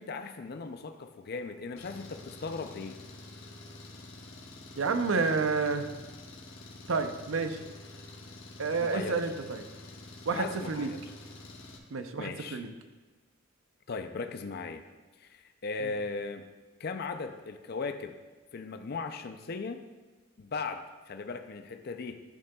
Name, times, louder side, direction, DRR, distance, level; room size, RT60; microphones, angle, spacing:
voice 1, 0.0-3.0 8.8-9.2 10.3-11.0 12.2-12.6 13.9-14.8 15.2-16.5 16.8-18.2 18.5-19.9 20.4-22.2, left 4 dB, 50° left, 8 dB, 0.5 m, -37 dB
Engine, 1.8-11.8, left 2 dB, 75° left, 1.1 m, -48 dB
voice 2, 4.8-5.9 6.9-7.6 8.6-9.6 10.3-10.9 11.9-12.7 15.8-15.9, right 4 dB, 85° right, 8 dB, 0.6 m, -30 dB
12.5 x 6.5 x 2.3 m, 1.2 s
head